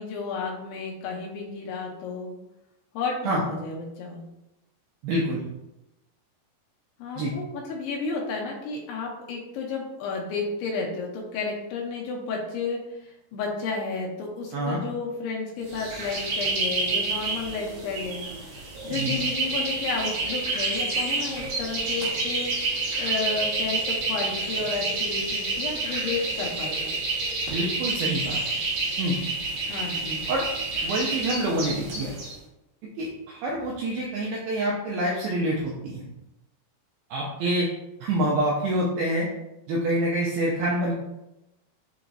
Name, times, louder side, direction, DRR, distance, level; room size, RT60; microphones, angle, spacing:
voice 1, 0.0-2.3 2.9-4.2 7.0-18.3 18.8-26.9 29.7-30.2, left 4 dB, 85° left, -1 dB, 2.6 m, -32 dB
voice 2, 5.0-5.4 7.2-7.3 14.5-14.8 18.9-19.2 27.5-28.4 29.0-29.2 30.3-30.5 30.8-32.1 33.0-36.0 37.1-37.7 38.0-39.3 39.7-40.9, right 1 dB, 85° right, -3 dB, 2.1 m, -26 dB
sound 1, 15.7-32.3, right 3 dB, 70° right, 3.0 m, -29 dB
6.8 x 3.0 x 2.6 m, 0.93 s
omnidirectional pair, 4.9 m